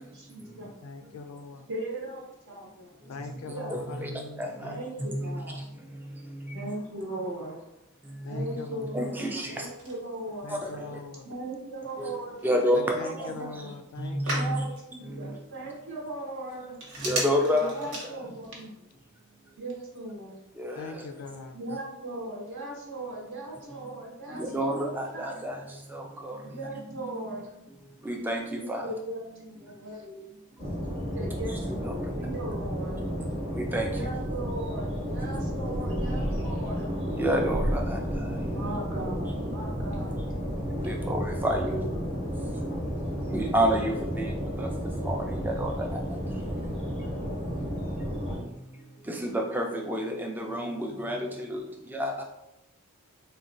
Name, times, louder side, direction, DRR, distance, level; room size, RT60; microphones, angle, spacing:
voice 1, 0.0-0.7 1.7-3.0 3.3-3.7 4.6-5.6 6.5-7.6 8.3-10.5 11.2-13.7 14.3-16.7 17.5-18.7 19.6-20.4 21.5-24.8 25.1-25.4 26.3-27.9 28.6-30.7 31.1-33.1 33.9-36.9 38.5-40.1 41.3-42.1 43.3-43.7, right 1 dB, 60° right, -3 dB, 0.6 m, -38 dB
voice 2, 0.8-1.7 3.1-4.8 8.2-9.1 10.4-11.3 12.7-14.5 20.8-21.6, left 4 dB, 80° left, 6 dB, 0.4 m, -41 dB
voice 3, 8.9-9.5 12.0-12.1 12.4-13.0 17.0-17.9 20.6-20.7 24.4-25.5 26.3-26.4 28.1-28.4 28.7-28.8 33.7-33.9 37.2-37.8 41.1-41.6 43.3-43.9 44.6-44.7 45.1-45.2 45.6-45.7 49.2-51.2 51.9-52.1, equal, 10° right, 1 dB, 0.3 m, -27 dB
Telephone, 9.1-18.7, right 1 dB, 85° right, 1.0 m, -40 dB
sound 1, 30.6-48.4, equal, 25° right, 0.7 m, -32 dB
3.8 x 2.2 x 2.5 m, 0.89 s
head